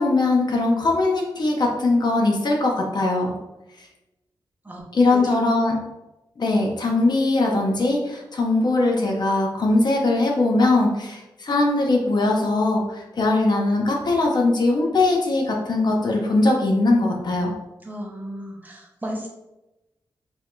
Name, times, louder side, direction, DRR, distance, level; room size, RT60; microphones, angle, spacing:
voice 1, 0.0-3.3 4.9-5.8 6.4-17.5, left 2 dB, 55° left, 0 dB, 0.6 m, -20 dB
voice 2, 17.8-19.3, equal, 20° right, -1 dB, 0.6 m, -34 dB
4.5 x 2.5 x 2.2 m, 0.97 s
wide cardioid pair, 110°, 9 cm